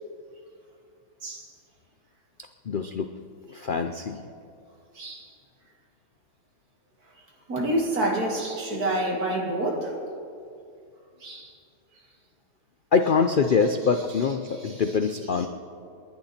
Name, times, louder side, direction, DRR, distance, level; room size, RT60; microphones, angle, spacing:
voice 1, 2.7-3.1 3.5-4.2 12.9-15.5, left 5 dB, 80° left, 7 dB, 0.4 m, -24 dB
voice 2, 4.9-5.3 7.5-10.0 11.2-11.5 14.5-15.0 15.4-15.5, right 1 dB, 60° right, 0 dB, 2.8 m, -28 dB
29.5 x 11.0 x 4.4 m, 2.4 s
omnidirectional pair, 1.8 m